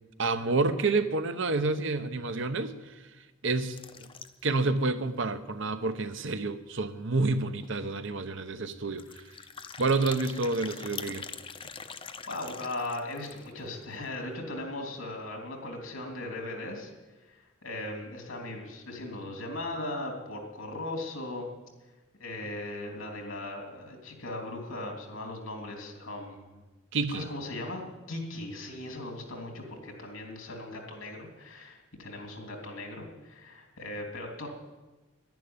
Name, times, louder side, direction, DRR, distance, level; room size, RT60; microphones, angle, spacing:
voice 1, 0.2-3.0 3.4-4.1 4.4-9.2 9.8-11.3 26.9-27.3, right 3 dB, 70° right, 10 dB, 0.9 m, -29 dB
sound 1, 3.7-4.6 5.1-5.2 5.4-5.5 5.9-6.0 7.3-7.4 7.6-7.9 8.9-13.6, left 6 dB, 25° left, 0.6 m, -44 dB
voice 2, 12.3-16.9 17.2-21.5 22.2-26.6 27.1-34.5, left 2 dB, 90° left, 1 dB, 3.2 m, -38 dB
11.0 x 10.5 x 9.7 m, 1.2 s
head